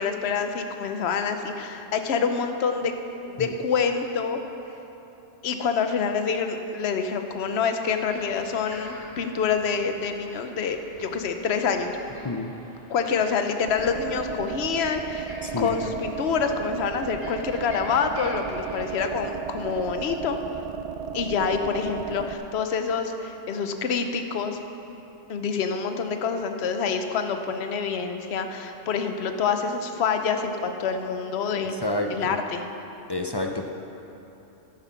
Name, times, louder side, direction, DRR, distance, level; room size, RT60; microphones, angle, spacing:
voice 1, 0.0-2.9 3.3-4.4 5.4-12.0 12.9-20.4 21.1-24.6 25.3-31.7 32.1-32.6, left 6 dB, 60° left, 6 dB, 1.0 m, -27 dB
sound 1, 7.2-18.8, equal, 10° right, 2.3 m, -47 dB
sound 2, 13.7-22.3, right 7 dB, 80° right, 0.3 m, -34 dB
voice 2, 31.5-32.4 33.1-33.7, left 2 dB, 35° left, 3 dB, 0.4 m, -29 dB
12.5 x 9.5 x 5.9 m, 3.0 s
omnidirectional pair, 1.3 m